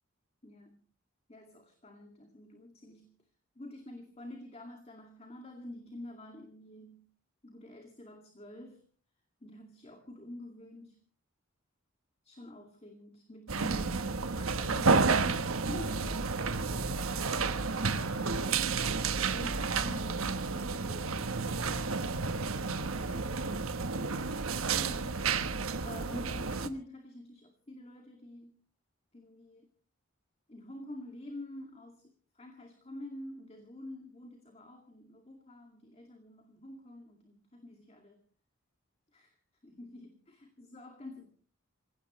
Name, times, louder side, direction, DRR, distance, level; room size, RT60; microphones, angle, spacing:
voice 1, 0.4-0.8 1.3-3.1 3.6-7.1 7.4-8.8 9.4-11.0 12.2-21.8 22.5-23.6 24.5-25.3 25.8-28.6 29.1-29.7 30.5-38.2 39.1-39.4 39.6-41.3, left 1 dB, 30° left, 4 dB, 2.2 m, -48 dB
sound 1, 13.5-26.7, right 4 dB, 85° right, 1.2 m, -31 dB
27.0 x 17.0 x 3.1 m, 0.40 s
head